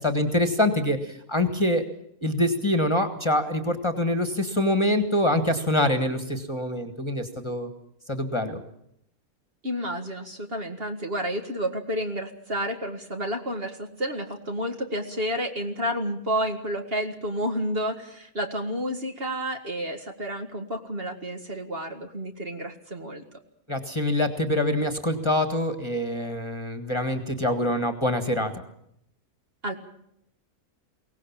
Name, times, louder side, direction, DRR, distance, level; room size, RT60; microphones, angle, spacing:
voice 1, 0.0-1.8 2.2-7.7 8.1-8.6 23.7-28.5, left 1 dB, 20° left, 8 dB, 1.8 m, -25 dB
voice 2, 9.6-23.2 29.6-29.8, equal, 40° right, 4 dB, 2.1 m, -30 dB
23.0 x 18.0 x 7.4 m, 0.75 s
omnidirectional pair, 1.6 m